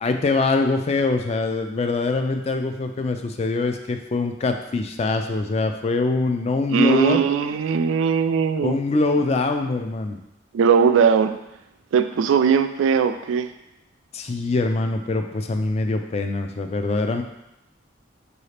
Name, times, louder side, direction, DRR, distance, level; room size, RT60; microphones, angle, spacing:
voice 1, 0.0-7.2 8.6-10.2 14.1-17.2, left 3 dB, 35° left, 5 dB, 0.3 m, -23 dB
voice 2, 6.7-8.8 10.5-11.3 11.9-13.5, right 6 dB, 90° right, 10 dB, 0.3 m, -19 dB
5.6 x 2.7 x 3.2 m, 0.88 s
head